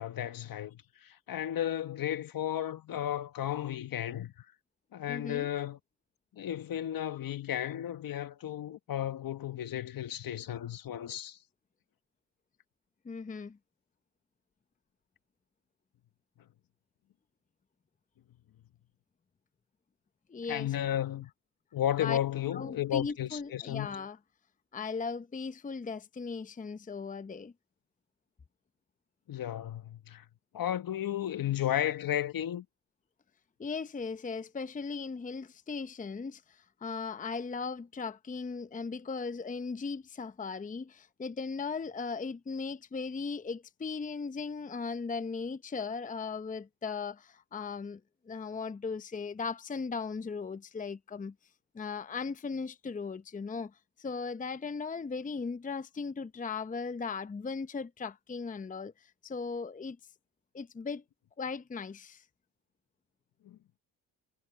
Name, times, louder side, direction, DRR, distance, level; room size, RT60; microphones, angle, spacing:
voice 1, 0.0-4.3 4.9-5.8 6.3-11.4 20.5-21.3 21.7-23.9 29.3-30.2 30.5-32.6 63.4-63.6, left 11 dB, 55° left, 1.7 m, -33 dB
voice 2, 5.1-5.5 13.0-13.6 20.3-20.7 22.0-22.2 22.5-24.2 24.7-27.5 33.6-48.0 48.3-51.3 51.7-60.0 60.5-61.0 61.4-62.2, left 5 dB, 20° left, 0.8 m, -37 dB
supercardioid pair, 70°, 40 cm